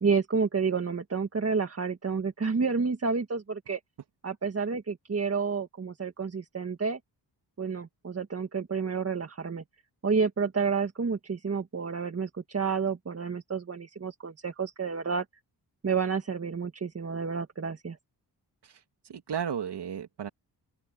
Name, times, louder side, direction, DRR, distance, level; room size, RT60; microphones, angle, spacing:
voice 1, 0.0-3.8 4.2-7.0 7.6-9.6 10.0-15.3 15.8-18.0, right 5 dB, 35° right, 1.8 m, -30 dB
voice 2, 19.1-20.3, right 8 dB, 70° right, 2.6 m, -34 dB
open air
wide cardioid pair, 125°, 42 cm